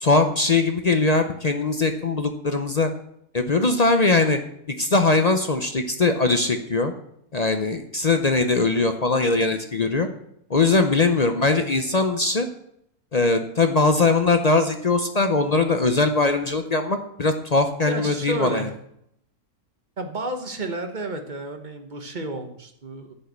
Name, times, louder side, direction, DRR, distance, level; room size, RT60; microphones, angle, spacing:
voice 1, 0.0-2.9 3.3-4.4 4.7-6.9 7.3-10.1 10.5-12.5 13.1-18.7, left 3 dB, 40° left, 7 dB, 0.5 m, -21 dB
voice 2, 17.9-18.7 20.0-23.1, right 2 dB, 35° right, 6 dB, 1.2 m, -31 dB
10.0 x 5.5 x 8.1 m, 0.73 s
omnidirectional pair, 1.6 m